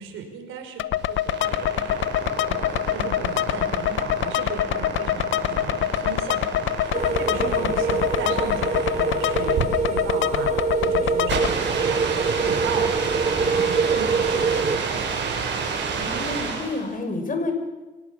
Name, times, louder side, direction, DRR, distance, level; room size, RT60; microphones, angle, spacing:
voice 1, 0.0-12.1 12.4-12.8 13.4-15.1, right 6 dB, 85° right, 4 dB, 5.4 m, -36 dB
sound 1, 0.8-11.5, left 12 dB, 75° left, 0.8 m, -25 dB
sound 2, 1.0-16.9, right 5 dB, 65° right, 6.6 m, -30 dB
sound 3, 6.9-14.8, right 5 dB, 35° right, 2.6 m, -25 dB
voice 2, 7.4-7.7 15.9-17.5, left 2 dB, 45° left, 5 dB, 6.0 m, -30 dB
24.0 x 19.0 x 7.2 m, 1.2 s
cardioid pair, 90°, 20 cm